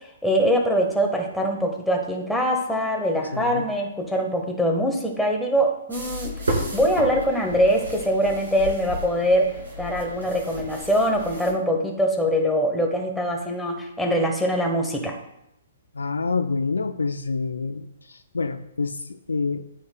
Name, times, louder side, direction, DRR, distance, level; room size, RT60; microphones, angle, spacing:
voice 1, 0.2-6.3 6.7-15.2, equal, ahead, 0 dB, 1.4 m, -23 dB
voice 2, 3.3-3.7 15.9-19.7, left 4 dB, 75° left, 10 dB, 0.4 m, -27 dB
sound 1, 5.9-11.5, equal, 75° right, 2.9 m, -32 dB
13.5 x 4.8 x 2.3 m, 0.81 s
figure-of-eight pair, 120°, 0 cm